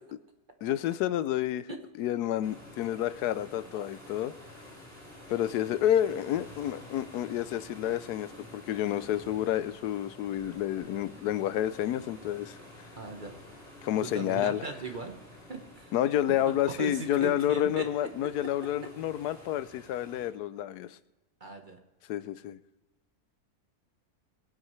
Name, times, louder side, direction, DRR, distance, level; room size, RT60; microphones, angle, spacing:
voice 1, 0.6-1.7 2.0-4.3 5.3-12.6 13.8-14.6 15.9-21.0 22.1-22.6, left 11 dB, 85° left, 14 dB, 1.1 m, -29 dB
sound 1, 2.4-20.3, left 1 dB, 10° right, 4.4 m, -50 dB
voice 2, 13.0-13.3 14.0-15.2 15.5-15.9 16.5-17.9 21.4-21.8, right 4 dB, 35° right, 4 dB, 1.2 m, -38 dB
22.5 x 8.7 x 3.2 m, 1.1 s
omnidirectional pair, 1.6 m